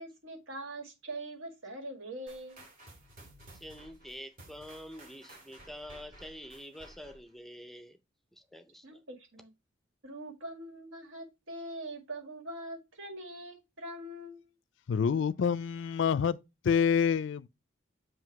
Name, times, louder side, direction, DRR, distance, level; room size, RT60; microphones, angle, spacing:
voice 1, 0.0-2.6 8.8-9.5 10.0-14.5, right 1 dB, 85° right, 2.0 m, -43 dB
sound 1, 2.3-7.3, right 1 dB, 45° right, 1.9 m, -54 dB
voice 2, 3.5-8.0 8.3-9.0, equal, ahead, 0.4 m, -47 dB
voice 3, 14.9-16.4 16.6-17.5, left 7 dB, 65° left, 0.4 m, -27 dB
7.5 x 2.8 x 4.6 m
head